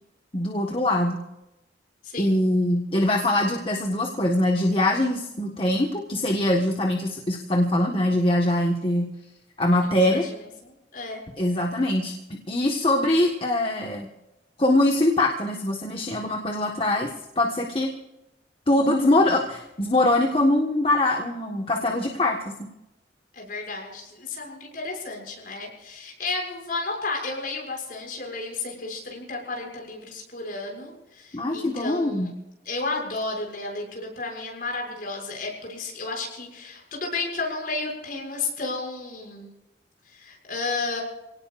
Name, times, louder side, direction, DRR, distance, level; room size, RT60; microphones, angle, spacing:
voice 1, 0.3-1.2 2.2-9.1 9.6-10.3 11.4-12.1 12.5-14.1 14.6-17.9 18.7-22.5 31.3-32.3, left 1 dB, 30° left, 1 dB, 1.5 m, -23 dB
voice 2, 2.0-2.4 9.8-10.4 10.9-11.2 23.3-32.3 32.6-39.5 40.1-41.0, left 3 dB, 50° left, 0 dB, 6.7 m, -32 dB
28.5 x 18.0 x 2.6 m, 0.94 s
head